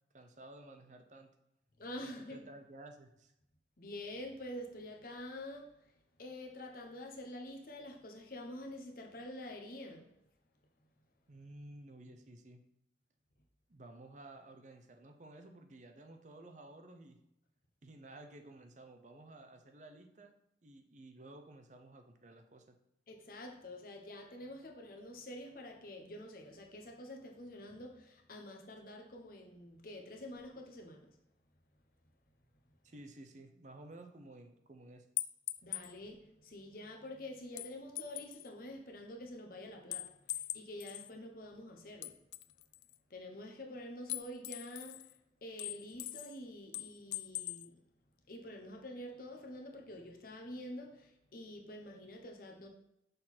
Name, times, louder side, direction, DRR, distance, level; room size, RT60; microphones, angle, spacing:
voice 1, 0.1-1.3 2.0-3.3 11.3-12.6 13.7-17.2 17.8-20.3 20.6-22.8 32.8-35.1, right 2 dB, 40° right, 0.6 m, -54 dB
voice 2, 1.8-2.4 3.8-5.8 6.2-10.1 23.1-31.1 35.6-42.1 43.1-45.0 45.4-47.7 48.3-52.7, left 1 dB, 50° left, 1.0 m, -47 dB
sound 1, 35.2-35.9 37.6-38.5 39.9-41.1 42.0-42.9 44.1-45.1 45.6-46.4 46.7-47.7, left 17 dB, 80° left, 0.3 m, -41 dB
6.6 x 3.9 x 4.3 m
head